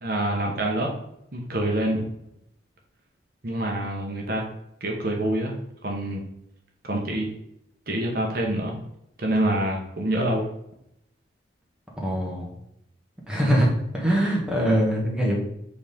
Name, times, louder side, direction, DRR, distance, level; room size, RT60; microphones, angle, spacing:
voice 1, 0.0-0.9 1.3-2.0 3.4-4.4 4.8-5.5 5.8-6.2 6.9-7.3 7.9-8.8 9.2-10.4, right 1 dB, 50° right, 0 dB, 1.1 m, -26 dB
voice 2, 12.0-12.5 13.3-13.7 13.9-15.4, equal, 5° right, -4 dB, 1.6 m, -22 dB
7.4 x 4.3 x 3.6 m, 0.78 s
head